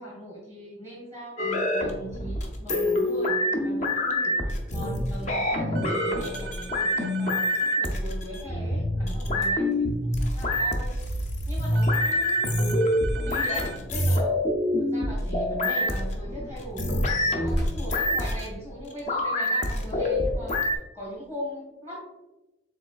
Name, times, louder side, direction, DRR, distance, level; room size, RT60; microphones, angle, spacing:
voice 1, 0.0-10.9 11.5-12.5 13.0-14.4 14.8-17.0 17.3-20.6 20.9-22.0, equal, 20° left, -6 dB, 1.4 m, -40 dB
sound 1, 1.4-20.8, left 1 dB, 40° left, 0.6 m, -26 dB
sound 2, 5.7-7.8 11.8-13.8, right 6 dB, 55° right, 0.4 m, -41 dB
sound 3, 8.9-9.0 9.3-9.8 11.5-11.6 11.8-11.9 12.3-14.1 14.4-14.5 15.2-19.0 19.6-19.8 20.4-20.5, equal, 60° left, 1.5 m, -35 dB
4.9 x 3.7 x 2.4 m, 1.0 s
head